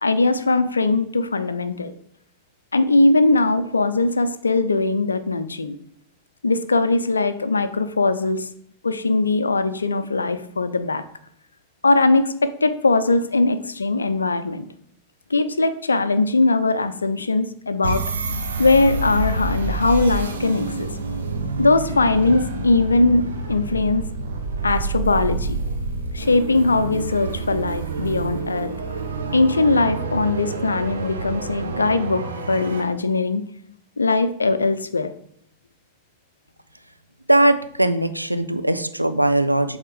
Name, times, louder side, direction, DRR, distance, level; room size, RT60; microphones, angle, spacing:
voice 1, 0.0-1.9 2.7-5.8 6.4-8.5 8.8-11.0 11.8-14.6 15.3-18.0 18.6-20.9 21.6-24.1 24.6-25.6 26.1-28.7 29.3-33.4 34.0-35.1, left 3 dB, 75° left, 12 dB, 0.5 m, -20 dB
sound 1, 17.8-32.8, right 3 dB, 70° right, 0.9 m, -28 dB
voice 2, 37.3-39.8, right 1 dB, 90° right, 10 dB, 0.4 m, -19 dB
7.6 x 3.6 x 5.0 m, 0.68 s
figure-of-eight pair, 90°, 0 cm